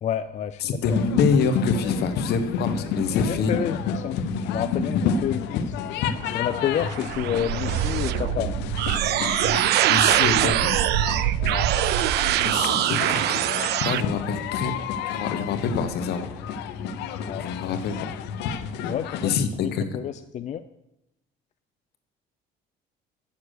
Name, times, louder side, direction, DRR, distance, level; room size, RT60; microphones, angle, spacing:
voice 1, 0.0-1.0 3.2-5.8 6.2-8.5 11.5-11.7 17.2-17.5 18.9-20.6, left 9 dB, 45° left, 11 dB, 0.5 m, -30 dB
voice 2, 0.6-3.5 9.9-10.8 12.4-13.5 13.8-14.7 15.0-16.3 17.4-18.2 19.2-19.8, left 5 dB, 70° left, 9 dB, 1.3 m, -26 dB
sound 1, 0.8-19.3, left 6 dB, 90° left, 0.7 m, -30 dB
sound 2, 6.3-14.0, right 13 dB, 75° right, 0.5 m, -23 dB
9.2 x 7.2 x 6.5 m, 0.88 s
cardioid pair, 110°, 17 cm